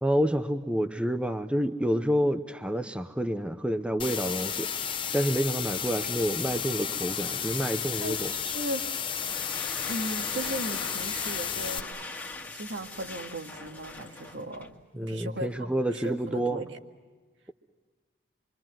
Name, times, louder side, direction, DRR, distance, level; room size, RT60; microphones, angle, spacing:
voice 1, 0.0-4.7 5.1-8.3 14.9-16.6, equal, 5° right, 8 dB, 0.8 m, -28 dB
sound 1, 4.0-11.8, left 8 dB, 25° left, 1.0 m, -32 dB
voice 2, 8.0-8.9 9.8-12.0 12.5-14.8 15.0-16.8, right 1 dB, 75° right, 4 dB, 2.0 m, -37 dB
sound 2, 9.1-14.8, left 2 dB, 10° left, 1.9 m, -41 dB
27.0 x 24.5 x 7.5 m, 1.4 s
head